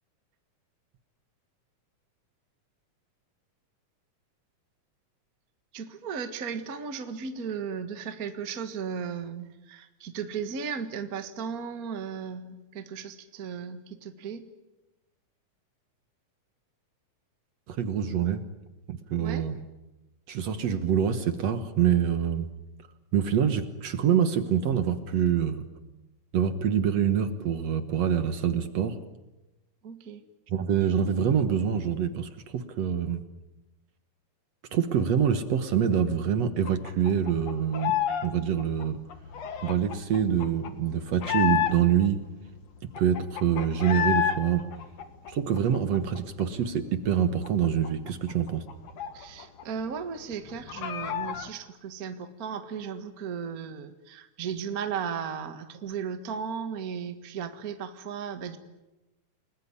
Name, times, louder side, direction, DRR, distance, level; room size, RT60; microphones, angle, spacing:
voice 1, 5.7-14.4 19.2-19.4 29.8-30.2 49.1-58.6, right 6 dB, 35° right, 8 dB, 1.6 m, -36 dB
voice 2, 17.7-18.5 18.9-19.6 20.3-22.5 23.1-25.6 26.3-29.0 30.5-33.2 34.7-38.0 38.2-39.0 39.6-42.3 43.0-44.7 45.3-48.6, right 8 dB, 60° right, 10 dB, 2.3 m, -25 dB
sound 1, 36.7-38.3 38.5-42.1 42.5-42.6 42.8-44.4 44.7-46.4 46.8-46.9 47.2-49.6 49.9-50.0 50.3-51.5, left 10 dB, 60° left, 2.7 m, -31 dB
29.0 x 20.5 x 9.9 m, 1.0 s
omnidirectional pair, 3.6 m